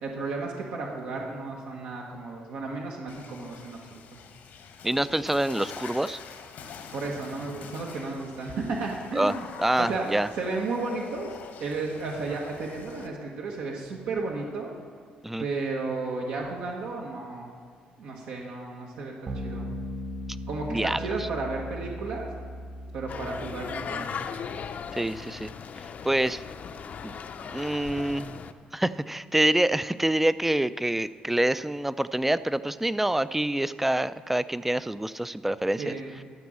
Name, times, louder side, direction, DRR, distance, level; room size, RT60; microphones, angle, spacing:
voice 1, 0.0-4.0 6.9-9.5 9.8-10.1 10.4-11.3 11.6-14.7 15.4-17.5 18.0-19.6 20.5-22.3 22.9-24.3 35.8-36.1, right 3 dB, 85° right, -2 dB, 1.4 m, -33 dB
Water / Splash splatter, 3.1-13.1, left 6 dB, 75° left, 1.2 m, -45 dB
voice 2, 4.8-6.2 9.2-9.3 9.6-10.3 15.2-15.5 20.7-21.3 24.9-25.5 26.0-26.4 27.0-28.4 28.7-35.9, right 1 dB, 5° right, 15 dB, 0.4 m, -26 dB
sound 1, 19.3-24.0, equal, 40° right, 1.4 m, -38 dB
sound 2, 23.1-28.5, left 6 dB, 55° left, 0.6 m, -37 dB
12.5 x 5.3 x 7.4 m, 2.2 s
cardioid pair, 90°, 3 cm